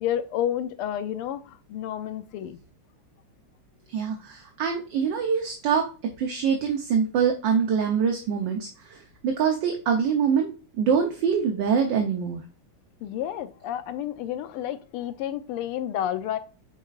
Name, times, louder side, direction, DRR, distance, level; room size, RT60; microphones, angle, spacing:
voice 1, 0.0-2.6 13.0-16.4, left 10 dB, 90° left, 1.6 m, -30 dB
voice 2, 3.9-5.9 6.2-12.4, right 6 dB, 65° right, 1.4 m, -24 dB
9.2 x 4.4 x 2.4 m
omnidirectional pair, 2.4 m